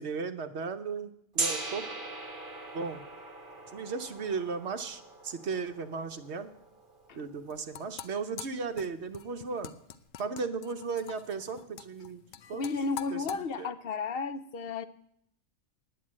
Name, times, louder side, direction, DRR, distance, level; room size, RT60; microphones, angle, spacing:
voice 1, 0.0-2.0 2.7-3.0 3.7-6.5 7.1-9.7 10.2-12.2 12.5-12.6 13.1-13.7, right 5 dB, 60° right, 8 dB, 1.2 m, -36 dB
Gong, 1.4-7.3, right 3 dB, 40° right, 1.7 m, -39 dB
sound 1, 7.3-13.4, left 9 dB, 75° left, 1.0 m, -45 dB
voice 2, 12.5-14.9, left 4 dB, 55° left, 11 dB, 0.8 m, -33 dB
9.3 x 9.3 x 8.5 m, 0.70 s
omnidirectional pair, 1.4 m